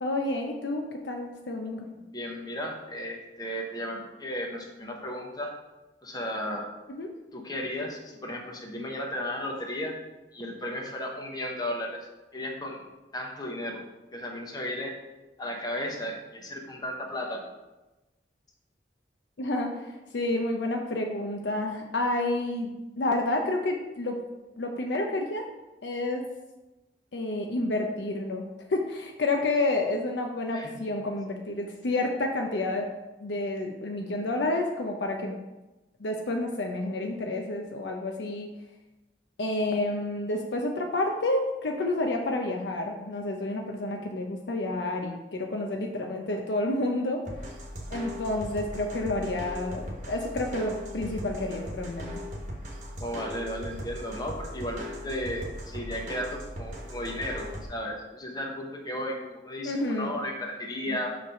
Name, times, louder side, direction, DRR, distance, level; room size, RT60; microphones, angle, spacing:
voice 1, 0.0-1.8 6.9-7.1 19.4-24.2 24.6-25.4 25.8-26.2 27.1-28.4 28.7-32.9 33.2-35.4 36.0-38.5 39.4-47.2 47.9-52.1 59.6-60.1 60.9-61.0, left 2 dB, 80° left, 2 dB, 0.6 m, -29 dB
voice 2, 2.0-5.6 6.0-6.7 7.3-10.0 10.3-12.8 13.1-13.8 14.1-14.9 15.4-17.4 30.5-30.8 53.0-61.2, left 1 dB, 25° left, 1 dB, 0.9 m, -34 dB
sound 1, 47.2-57.6, equal, 45° right, 1.2 m, -39 dB
6.5 x 3.3 x 5.6 m, 1.1 s
head